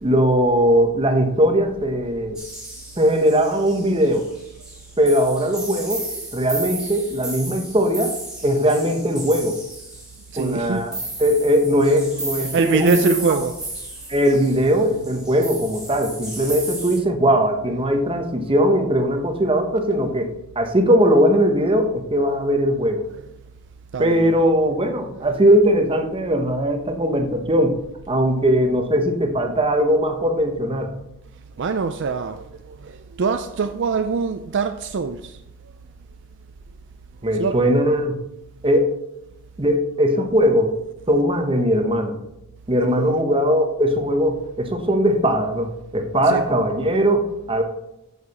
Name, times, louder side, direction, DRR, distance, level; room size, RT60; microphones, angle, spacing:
voice 1, 0.0-2.4 3.0-4.3 5.0-6.1 6.3-8.1 8.4-9.6 10.4-10.9 11.2-13.4 14.1-23.0 24.0-27.8 28.1-31.0 37.2-38.3 38.6-38.9 39.6-40.8 41.1-42.2 42.7-47.6, equal, 25° right, 1.0 m, -19 dB
sound 1, 2.3-17.0, right 2 dB, 5° right, 2.1 m, -34 dB
voice 2, 10.3-10.8 12.1-12.3 12.5-13.6 17.7-17.8 23.0-23.3 23.9-24.4 25.0-25.3 31.6-35.7 37.3-37.6 42.9-43.2 46.2-46.5, right 5 dB, 55° right, 0.4 m, -25 dB
8.5 x 7.2 x 4.2 m
head